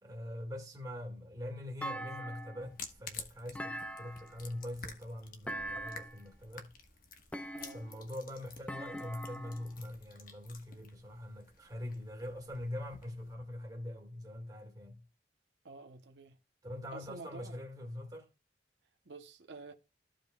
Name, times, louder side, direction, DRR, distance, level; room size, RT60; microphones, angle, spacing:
voice 1, 0.0-6.7 7.7-15.0 16.6-18.3, left 1 dB, 20° right, 1.8 m, -43 dB
Thump thud, 1.8-2.7 3.5-4.5 5.5-6.2 7.3-8.0 8.7-9.7, right 1 dB, 5° left, 0.3 m, -42 dB
sound 1, 2.6-13.3, left 5 dB, 55° left, 1.2 m, -52 dB
voice 2, 15.6-16.4 16.9-17.5 19.1-19.7, right 3 dB, 80° right, 0.8 m, -49 dB
14.0 x 5.1 x 2.2 m
head